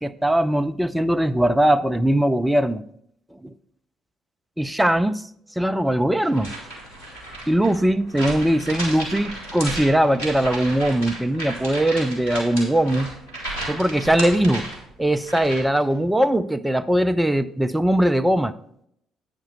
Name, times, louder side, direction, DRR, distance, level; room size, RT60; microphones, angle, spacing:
voice 1, 0.0-2.8 3.4-3.5 4.6-5.2 5.6-6.5 7.5-13.1 13.7-14.7 15.0-18.5, right 1 dB, 5° right, 9 dB, 0.4 m, -20 dB
sound 1, 6.2-15.8, right 1 dB, 80° left, 2.4 m, -34 dB
9.0 x 5.2 x 5.3 m, 0.70 s
figure-of-eight pair, 50°, 0 cm